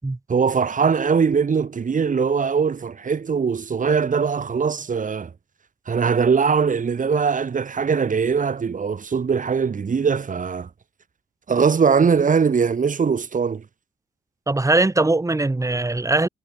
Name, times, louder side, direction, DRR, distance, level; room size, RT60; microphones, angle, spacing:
voice 1, 0.3-5.3 5.9-10.7 11.5-13.6, right 6 dB, 40° right, 6.5 m, -21 dB
voice 2, 14.5-16.3, right 2 dB, 15° right, 7.0 m, -20 dB
cardioid pair, 90°, 20 cm